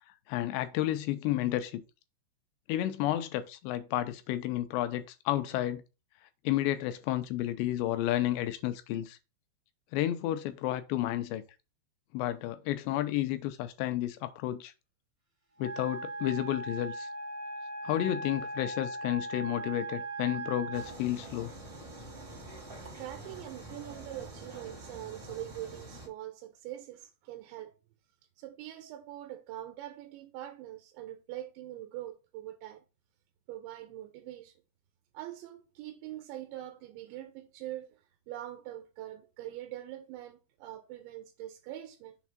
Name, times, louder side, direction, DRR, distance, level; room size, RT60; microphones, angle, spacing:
voice 1, 0.3-1.8 2.7-5.8 6.4-9.2 9.9-11.4 12.1-14.7 15.6-17.1 17.8-21.5, left 13 dB, 85° left, 2.8 m, -31 dB
Wind instrument woodwind instrument, 15.6-21.0, right 2 dB, 60° right, 0.9 m, -39 dB
sound 1, 20.7-26.1, right 2 dB, 35° right, 1.0 m, -46 dB
voice 2, 22.9-27.8 28.4-32.8 33.5-34.5 35.1-42.2, right 13 dB, 85° right, 3.0 m, -43 dB
7.2 x 3.4 x 5.9 m
omnidirectional pair, 5.3 m